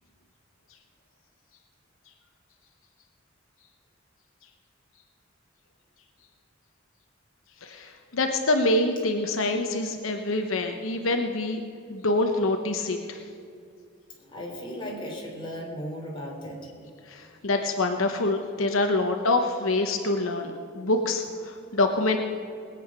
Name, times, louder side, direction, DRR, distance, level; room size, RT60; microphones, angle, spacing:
voice 1, 7.6-11.6 11.9-13.2 17.1-22.2, left 2 dB, 75° left, 4 dB, 0.9 m, -26 dB
voice 2, 14.2-16.6, equal, 25° left, -2 dB, 3.3 m, -36 dB
20.0 x 8.6 x 6.0 m, 2.4 s
head